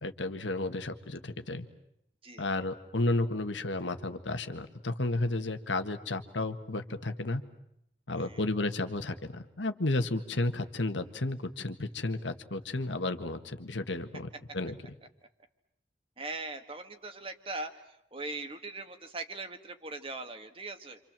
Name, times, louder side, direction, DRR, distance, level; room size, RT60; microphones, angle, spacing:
voice 1, 0.0-1.7 2.4-7.4 8.1-14.9, left 2 dB, 90° left, 8 dB, 1.7 m, -32 dB
voice 2, 16.2-17.7 18.1-21.0, right 2 dB, 30° right, 7 dB, 1.8 m, -40 dB
28.5 x 27.0 x 7.5 m, 0.78 s
head